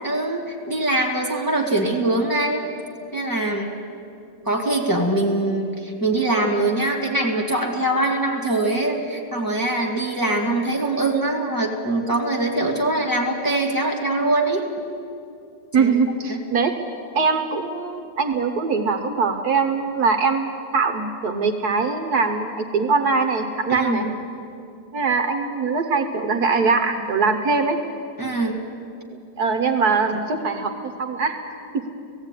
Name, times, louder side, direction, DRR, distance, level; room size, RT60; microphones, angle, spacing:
voice 1, 0.0-2.6 3.1-3.7 4.5-14.6 15.8-15.9 16.3-16.4 23.7-24.1 28.2-28.6, right 2 dB, 10° left, -1 dB, 1.9 m, -23 dB
voice 2, 15.7-16.7 17.1-24.1 24.9-27.8 29.1-31.4 31.7-31.8, right 4 dB, 60° right, 6 dB, 1.5 m, -22 dB
17.0 x 15.5 x 9.7 m, 2.5 s
omnidirectional pair, 2.0 m